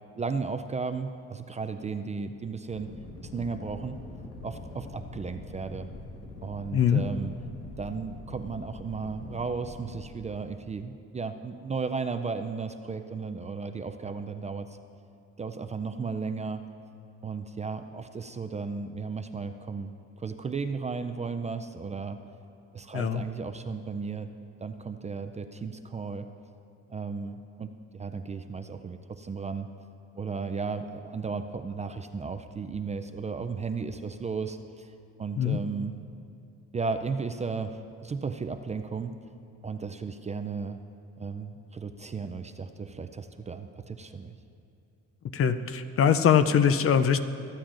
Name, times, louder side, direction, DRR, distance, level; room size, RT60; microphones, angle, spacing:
voice 1, 0.1-2.9 3.2-4.0 4.4-5.9 6.4-7.3 7.8-14.7 15.4-16.6 17.2-22.2 22.7-24.3 24.6-26.3 26.9-29.7 30.2-34.9 35.2-35.9 36.7-39.1 39.6-40.8 41.2-44.3, right 5 dB, 25° right, 8 dB, 0.4 m, -34 dB
sound 1, 2.7-10.1, left 2 dB, 85° left, 1.4 m, -44 dB
voice 2, 6.7-7.0 22.9-23.2 35.4-35.6 45.3-47.2, left 8 dB, 45° left, 10 dB, 0.5 m, -22 dB
24.5 x 8.8 x 2.5 m, 2.5 s
cardioid pair, 110°, 31 cm